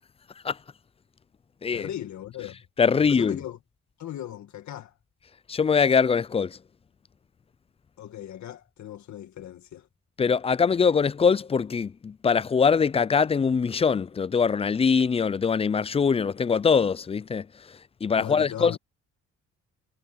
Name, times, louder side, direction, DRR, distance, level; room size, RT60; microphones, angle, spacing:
voice 1, 1.7-2.6 2.9-3.6 4.0-4.9 8.0-9.9 18.1-18.8, left 11 dB, 70° left, 1.7 m, -38 dB
voice 2, 2.8-3.4 5.5-6.6 10.2-18.8, left 6 dB, 20° left, 0.4 m, -23 dB
cardioid pair, 90°, 30 cm